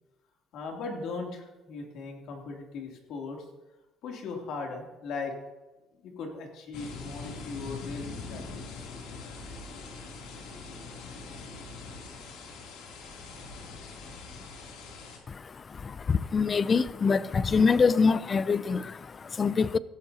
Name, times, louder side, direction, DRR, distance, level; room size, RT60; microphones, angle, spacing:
voice 1, 0.5-3.4 4.0-5.3 6.0-8.5, left 4 dB, 70° left, 2.9 m, -38 dB
sound 1, 6.7-15.2, left 4 dB, 90° left, 3.0 m, -42 dB
voice 2, 15.3-19.8, left 5 dB, 30° left, 0.5 m, -25 dB
16.0 x 13.0 x 2.9 m
cardioid pair, 120°, 0 cm